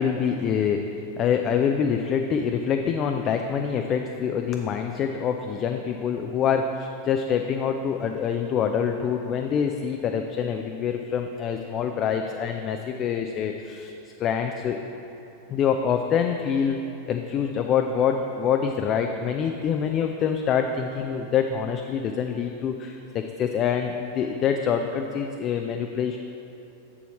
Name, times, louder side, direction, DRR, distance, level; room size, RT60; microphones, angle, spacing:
voice 1, 0.0-13.9 14.2-14.8 15.5-26.2, left 7 dB, 30° left, 4 dB, 0.4 m, -25 dB
7.2 x 6.9 x 4.2 m, 3.0 s
figure-of-eight pair, 90°, 0 cm